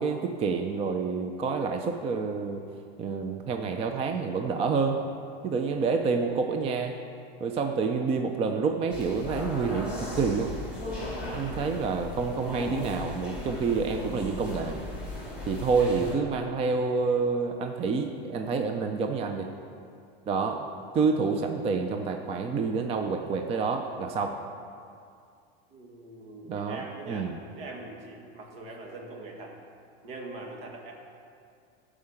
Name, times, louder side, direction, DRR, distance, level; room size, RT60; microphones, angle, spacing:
voice 1, 0.0-2.7 3.0-5.0 5.4-6.9 7.4-10.5 11.3-14.8 15.5-19.5 20.3-20.7 20.9-24.4 26.5-27.4, right 4 dB, 20° right, 4 dB, 0.4 m, -28 dB
sound 1, 8.9-16.2, left 2 dB, 5° right, 2.3 m, -37 dB
voice 2, 15.8-16.5 25.7-29.6 30.0-30.9, right 2 dB, 65° right, 0 dB, 2.1 m, -43 dB
12.5 x 5.0 x 6.5 m, 2.4 s
supercardioid pair, 140°, 30 cm